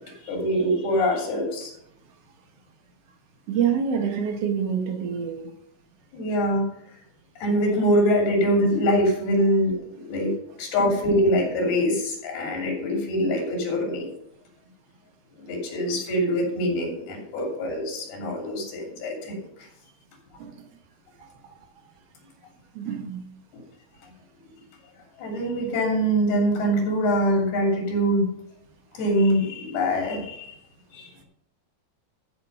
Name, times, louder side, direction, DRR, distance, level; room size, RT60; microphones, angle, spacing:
voice 1, 0.2-1.7 6.1-6.6 7.4-9.8 10.0-10.3 10.6-14.1 15.4-19.4 25.2-28.3 28.9-30.5 30.9-31.3, equal, 75° left, 1 dB, 5.0 m, -24 dB
voice 2, 3.5-5.5 10.8-10.9 20.4-20.7 21.2-21.3 22.7-23.2, right 7 dB, 60° right, 5 dB, 1.6 m, -27 dB
13.5 x 6.5 x 5.5 m, 0.74 s
omnidirectional pair, 4.5 m